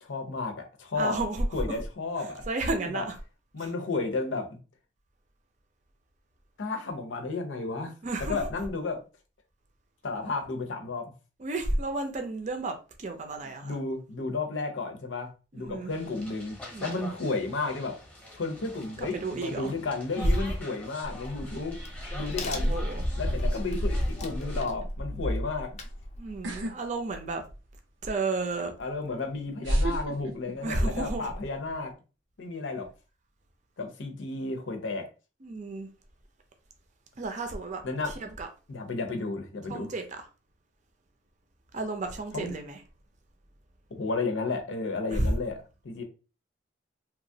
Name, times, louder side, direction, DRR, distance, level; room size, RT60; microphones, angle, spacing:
voice 1, 0.0-1.2 1.5-2.4 2.9-3.0 3.5-4.6 6.6-7.9 8.3-9.0 10.0-11.1 13.6-18.0 18.3-21.8 22.1-22.8 23.2-25.8 28.8-31.9 32.4-32.9 33.8-35.1 37.8-38.1 38.7-39.9 42.3-42.6 43.9-45.6 45.8-46.0, left 3 dB, 90° left, 0.7 m, -33 dB
voice 2, 0.9-1.5 2.5-3.1 3.6-3.7 8.0-8.4 11.4-13.8 15.5-15.9 16.7-17.1 19.0-19.7 20.2-20.4 22.6-23.0 26.2-27.4 28.0-28.7 30.6-31.3 35.4-35.9 37.2-37.8 38.2-38.5 39.7-40.3 41.7-42.8 45.1-45.3, right 2 dB, 40° right, 0.5 m, -31 dB
sound 1, 15.9-24.6, left 1 dB, 10° left, 0.8 m, -45 dB
Crack, 21.0-26.5, equal, 35° left, 0.4 m, -32 dB
sound 2, 26.4-26.7 27.1-27.7 28.8-28.9 29.6-31.0 31.3-31.7, right 1 dB, 85° right, 0.6 m, -29 dB
2.9 x 2.3 x 2.6 m
head